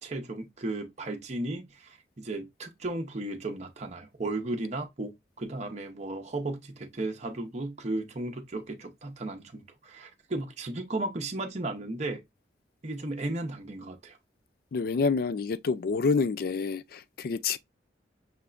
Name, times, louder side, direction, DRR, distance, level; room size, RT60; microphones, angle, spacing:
voice 1, 0.0-12.2 12.8-14.2, right 2 dB, 40° right, 0.7 m, -35 dB
voice 2, 14.7-17.6, left 4 dB, 55° left, 0.3 m, -28 dB
5.7 x 3.4 x 2.5 m
head